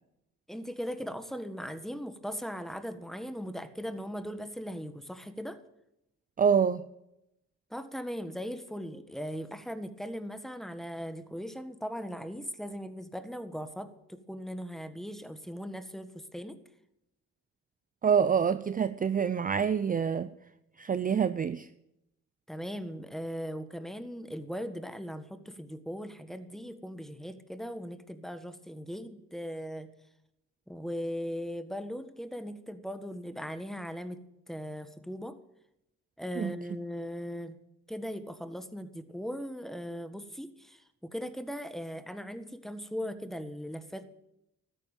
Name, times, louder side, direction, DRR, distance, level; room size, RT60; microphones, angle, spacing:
voice 1, 0.5-5.6 7.7-16.6 22.5-29.9 30.7-34.2 34.5-35.4 36.2-37.6 37.9-44.0, equal, ahead, 10 dB, 1.5 m, -39 dB
voice 2, 6.4-6.8 18.0-20.3 20.8-21.7 36.4-36.5, right 7 dB, 30° right, 14 dB, 0.6 m, -26 dB
13.5 x 9.5 x 9.0 m, 0.83 s
cardioid pair, 90°, 30 cm